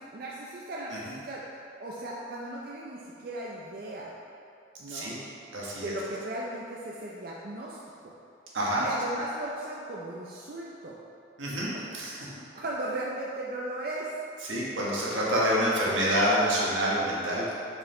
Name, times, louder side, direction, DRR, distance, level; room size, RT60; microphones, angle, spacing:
voice 1, 0.0-1.4 1.8-4.1 4.8-5.1 5.8-7.8 8.0-8.1 8.8-11.0 11.7-11.9 12.5-14.1, right 1 dB, 50° right, -5 dB, 0.5 m, -37 dB
voice 2, 4.9-5.2 5.5-5.9 8.5-8.8 11.4-12.1 14.4-17.4, equal, 85° right, -6 dB, 1.4 m, -27 dB
5.5 x 5.0 x 3.7 m, 2.6 s
head